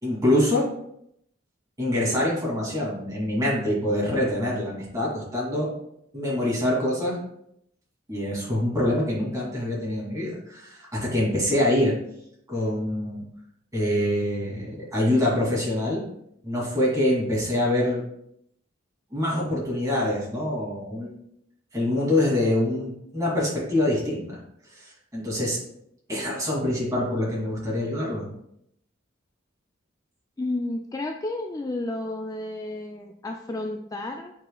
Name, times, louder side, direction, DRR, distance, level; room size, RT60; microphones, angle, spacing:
voice 1, 0.0-0.6 1.8-5.7 6.1-7.2 8.1-11.9 12.5-13.2 13.7-16.0 16.4-18.0 19.1-21.1 21.7-24.4 24.8-25.6 26.1-28.3, left 1 dB, 20° right, -5 dB, 2.5 m, -25 dB
voice 2, 30.4-34.3, left 2 dB, 20° left, 3 dB, 0.3 m, -31 dB
8.6 x 4.8 x 2.3 m, 0.74 s
head